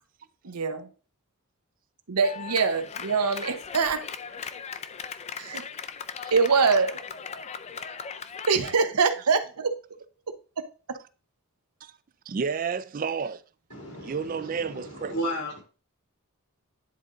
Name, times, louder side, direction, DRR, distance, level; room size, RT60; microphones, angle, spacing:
voice 1, 0.4-0.9 2.1-4.1 5.4-5.6 6.3-7.0 8.5-9.7, right 5 dB, 90° right, 0.8 m, -24 dB
Clapping, 2.2-8.8, left 6 dB, 30° left, 0.4 m, -38 dB
voice 2, 12.3-13.4 14.0-15.2, right 6 dB, 40° right, 0.3 m, -31 dB
voice 3, 13.7-15.6, equal, 90° left, 3.9 m, -34 dB
10.0 x 3.8 x 3.8 m
head